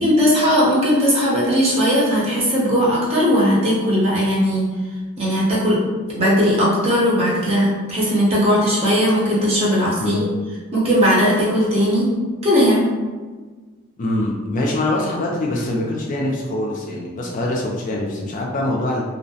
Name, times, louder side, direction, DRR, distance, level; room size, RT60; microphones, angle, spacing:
voice 1, 0.0-4.7 5.2-5.8 6.1-10.2 10.7-12.1 12.4-12.8, equal, 30° right, -6 dB, 0.6 m, -18 dB
voice 2, 10.0-10.3 14.0-19.0, left 1 dB, 35° left, -2 dB, 0.3 m, -24 dB
2.7 x 2.0 x 2.7 m, 1.4 s
head